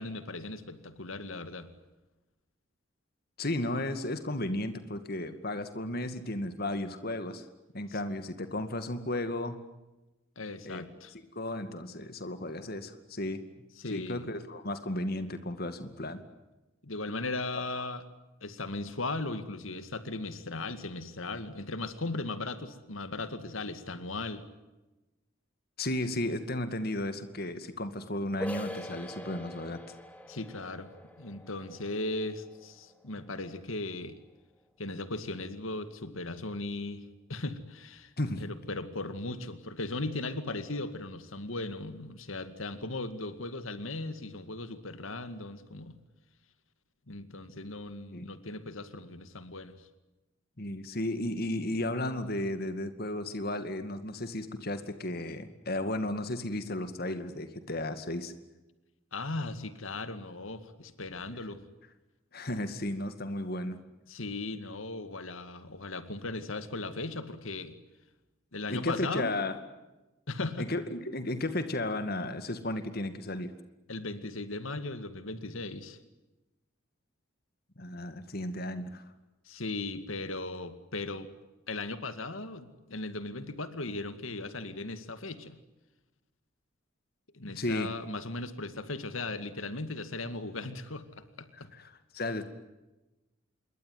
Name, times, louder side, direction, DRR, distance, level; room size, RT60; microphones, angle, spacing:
voice 1, 0.0-1.7 7.9-8.0 10.4-11.1 13.8-14.3 16.8-18.0 18.4-24.4 30.3-30.9 31.2-34.2 34.8-37.0 37.3-38.1 38.4-46.0 47.1-49.9 59.1-61.6 64.1-67.7 68.5-69.4 70.3-70.7 73.9-76.0 79.5-81.3 81.7-85.6 87.3-91.7, left 2 dB, 90° left, 11 dB, 2.2 m, -37 dB
voice 2, 3.4-7.5 7.7-9.6 10.6-10.8 11.3-13.4 13.9-16.2 17.5-17.9 25.8-29.8 38.2-38.5 48.1-48.3 50.6-58.3 62.3-63.8 68.7-69.6 70.6-73.5 77.8-79.0 87.5-87.9 91.6-92.5, left 1 dB, 50° left, 10 dB, 2.2 m, -34 dB
sound 1, 28.4-33.9, left 1 dB, 5° left, 3.2 m, -44 dB
27.0 x 23.0 x 9.5 m, 1.0 s
head